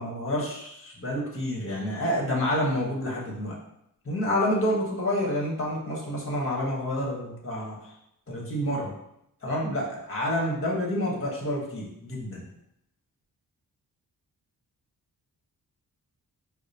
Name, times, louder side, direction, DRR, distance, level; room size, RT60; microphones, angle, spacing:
voice 1, 0.0-3.6 4.0-7.9 8.3-8.9 9.4-12.4, left 1 dB, 30° left, -3 dB, 1.3 m, -28 dB
4.6 x 2.0 x 2.8 m, 0.80 s
cardioid pair, 55°, 40 cm